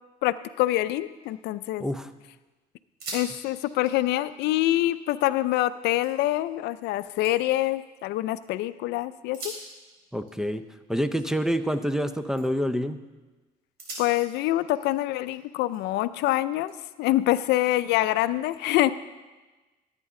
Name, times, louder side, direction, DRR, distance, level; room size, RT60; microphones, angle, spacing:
voice 1, 0.2-1.8 3.1-9.5 14.0-16.7 17.0-18.9, left 15 dB, 85° left, 15 dB, 0.4 m, -25 dB
sound 1, 1.0-2.0 2.4-2.5 2.8-3.3 3.6-5.6 6.0-6.5 6.9-8.5 9.2-12.0 12.3-12.7 13.2-13.3 13.8-16.0 16.7-17.8, right 2 dB, 70° right, 4.1 m, -45 dB
voice 2, 10.1-10.6 10.9-13.0, equal, 5° right, 10 dB, 0.5 m, -27 dB
14.5 x 9.0 x 3.7 m, 1.2 s
cardioid pair, 110°, 17 cm